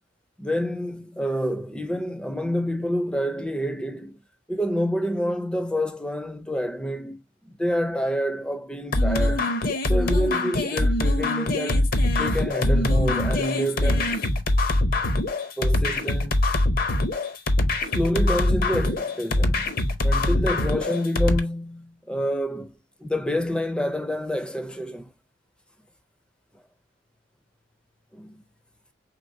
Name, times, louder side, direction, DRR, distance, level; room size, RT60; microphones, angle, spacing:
voice 1, 0.4-4.2 4.5-7.2 7.4-9.5 9.9-11.9 12.2-14.2 15.6-16.4 17.9-19.7 20.0-22.7 23.0-25.1 28.1-28.4, equal, 5° left, 0.4 m, -28 dB
sound 1, 8.9-21.4, left 1 dB, 50° left, 0.6 m, -23 dB
4.5 x 3.4 x 2.6 m
head